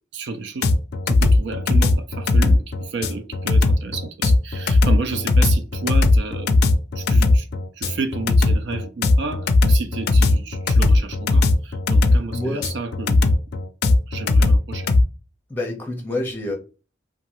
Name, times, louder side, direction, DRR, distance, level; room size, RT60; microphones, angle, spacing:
voice 1, 0.1-0.7 1.1-6.6 7.0-7.5 7.7-13.3 14.1-14.9, right 4 dB, 65° right, 0.4 m, -31 dB
sound 1, 0.6-15.0, left 2 dB, 55° left, 0.4 m, -17 dB
voice 2, 12.3-12.6 15.5-16.5, left 1 dB, 10° left, 0.8 m, -27 dB
2.8 x 2.3 x 2.9 m
head